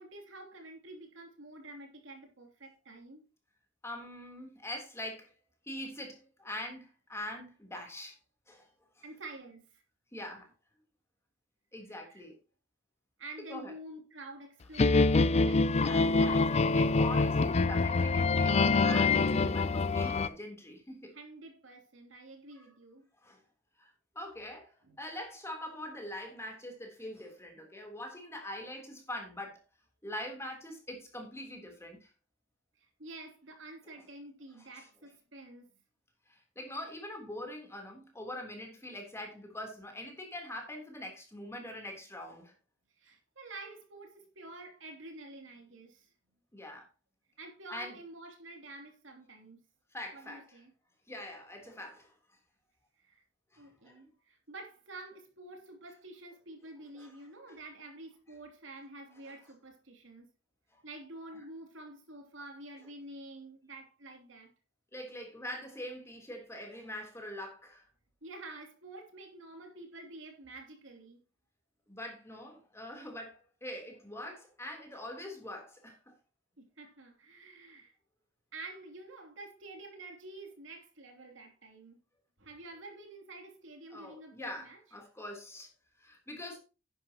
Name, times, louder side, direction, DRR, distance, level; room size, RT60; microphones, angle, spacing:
voice 1, 0.0-3.2 9.0-9.8 12.0-12.2 13.2-15.2 15.4-15.7 21.1-23.1 24.8-25.0 32.8-35.7 42.9-46.1 47.4-49.6 50.1-50.7 53.0-53.2 53.6-60.3 60.8-64.5 68.2-71.2 76.6-77.9 78.5-82.0 82.4-84.8, right 2 dB, 85° right, 3.0 m, -49 dB
voice 2, 3.8-5.3 5.6-8.2 8.5-8.7 9.0-9.1 10.1-10.5 11.7-12.3 13.5-13.7 15.8-21.1 22.6-22.7 23.2-23.4 23.8-29.6 30.0-32.1 34.7-34.8 36.3-42.5 46.5-46.9 47.7-47.9 49.9-50.6 51.1-52.1 53.5-54.0 56.9-57.1 59.3-59.4 64.9-67.9 71.9-76.1 83.9-85.7 86.0-86.6, left 1 dB, 15° left, 3.4 m, -43 dB
sound 1, 14.8-20.3, left 3 dB, 35° left, 0.4 m, -25 dB
11.0 x 10.0 x 2.9 m
head